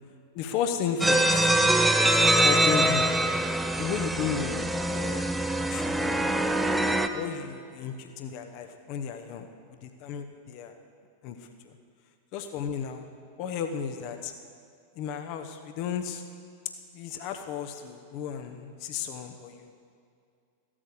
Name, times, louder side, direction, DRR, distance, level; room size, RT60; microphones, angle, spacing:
voice 1, 0.3-1.5 2.4-3.1 3.8-5.3 5.6-6.3 6.8-9.5 9.8-10.7 11.2-11.4 11.6-11.8 12.3-13.1 13.4-14.3 15.0-16.2 16.9-19.7, left 7 dB, 45° left, 6 dB, 0.9 m, -34 dB
sound 1, 1.0-7.1, right 1 dB, 5° right, 0.7 m, -24 dB
15.0 x 8.8 x 6.8 m, 2.4 s
figure-of-eight pair, 90°, 0 cm